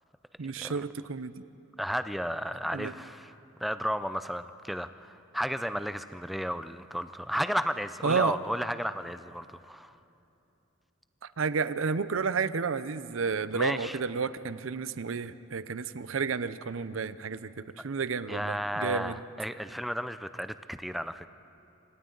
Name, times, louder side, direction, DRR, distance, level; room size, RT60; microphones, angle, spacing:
voice 1, 0.4-1.3 2.7-2.9 8.0-8.4 11.4-19.2, right 5 dB, 80° right, 14 dB, 0.6 m, -31 dB
voice 2, 1.8-3.4 3.6-9.9 13.5-14.0 17.8-17.9 18.3-21.3, equal, ahead, 11 dB, 0.4 m, -33 dB
27.5 x 25.0 x 3.9 m, 2.9 s
head